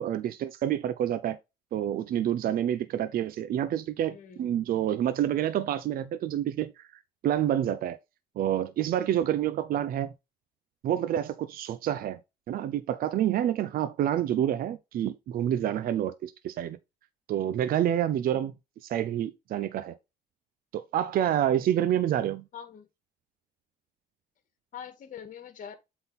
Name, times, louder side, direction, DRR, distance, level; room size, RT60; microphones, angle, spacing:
voice 1, 0.0-1.4 1.7-6.9 7.2-8.0 8.4-10.1 10.8-12.2 12.5-16.8 17.3-18.5 18.8-20.0 20.7-22.4, right 11 dB, 60° right, 0.7 m, -28 dB
voice 2, 4.1-4.5 22.5-22.9 24.7-25.8, left 8 dB, 50° left, 1.9 m, -43 dB
7.9 x 3.9 x 4.1 m
cardioid pair, 110°, 17 cm